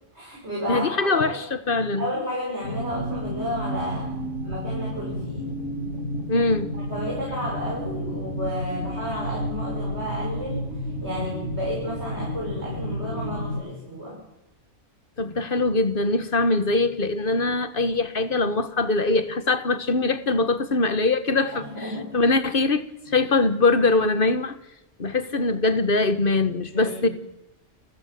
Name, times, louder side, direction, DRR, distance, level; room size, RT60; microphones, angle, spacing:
voice 1, 0.1-1.4 2.0-4.1 4.4-5.5 6.7-14.2 21.5-22.2 23.0-23.1 26.7-27.1, equal, 60° right, 7.2 m, -32 dB
voice 2, 0.7-2.1 6.3-6.7 15.2-21.6 22.1-22.9 23.1-24.6 25.0-27.1, left 3 dB, 45° left, 1.6 m, -22 dB
sound 1, 2.6-13.5, equal, 75° left, 4.3 m, -31 dB
30.0 x 12.5 x 7.8 m
omnidirectional pair, 1.2 m